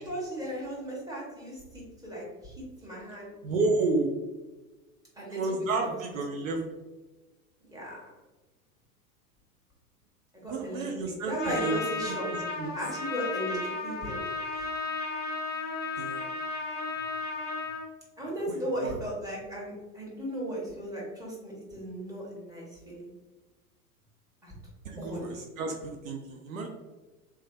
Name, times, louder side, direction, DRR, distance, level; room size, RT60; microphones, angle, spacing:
voice 1, 0.0-2.5 2.8-3.3 5.2-6.0 7.7-8.0 10.3-10.8 11.3-12.3 12.7-14.2 14.5-14.6 18.2-23.1 24.4-24.5 25.0-25.4, right 1 dB, 10° right, -5 dB, 1.4 m, -36 dB
voice 2, 3.4-4.1 5.3-6.6 10.5-11.7 12.1-12.7 16.0-16.3 18.5-18.6 18.8-18.9 24.8-26.7, right 3 dB, 65° right, 2 dB, 0.7 m, -31 dB
Trumpet, 11.4-17.9, left 4 dB, 20° left, 0.6 m, -34 dB
3.5 x 3.2 x 2.7 m, 1.2 s
figure-of-eight pair, 85°, 44 cm